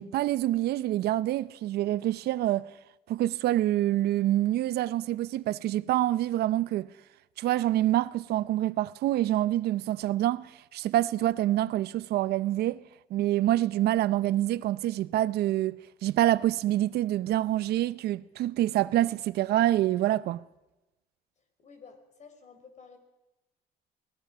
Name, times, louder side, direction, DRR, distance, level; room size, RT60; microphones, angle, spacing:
voice 1, 0.0-2.7 3.1-6.9 7.4-12.8 13.1-20.4, right 14 dB, 70° right, 0.7 m, -26 dB
voice 2, 21.4-23.0, left 5 dB, 45° left, 4.6 m, -52 dB
24.0 x 19.0 x 6.1 m
cardioid pair, 110°, 17 cm